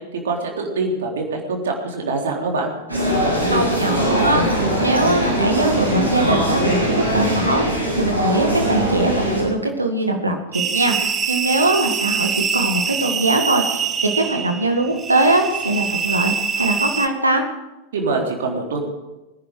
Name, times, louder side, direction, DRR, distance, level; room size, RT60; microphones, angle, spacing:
voice 1, 0.1-2.7 17.9-18.8, right 3 dB, 60° right, 1 dB, 3.7 m, -24 dB
sound 1, 2.9-9.4, equal, 90° left, 6.8 m, -21 dB
voice 2, 3.5-17.4, right 2 dB, 80° right, 4 dB, 1.9 m, -21 dB
sound 2, 10.5-17.1, right 6 dB, 25° right, 1.2 m, -24 dB
23.5 x 10.5 x 5.1 m, 1.0 s
figure-of-eight pair, 90°, 0 cm